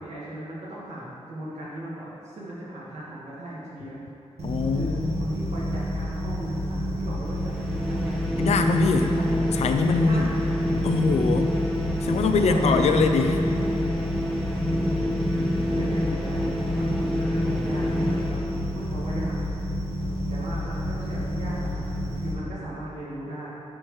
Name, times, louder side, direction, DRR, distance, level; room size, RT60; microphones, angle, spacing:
voice 1, 0.0-4.0 4.6-8.2 8.8-9.3 10.0-10.5 12.4-12.8 14.7-16.4 16.7-18.4 18.7-19.5 20.3-23.5, right 1 dB, 85° right, -8 dB, 1.6 m, -37 dB
voice 2, 4.4-5.1 8.4-9.1 9.5-10.3 10.8-11.6 12.0-13.4, left 4 dB, 70° left, 6 dB, 0.5 m, -23 dB
sound 1, 4.4-22.3, equal, 70° right, 1.4 m, -30 dB
sound 2, 7.2-19.1, left 1 dB, ahead, 0.9 m, -28 dB
12.0 x 4.5 x 3.1 m, 2.7 s
wide cardioid pair, 170°, 11 cm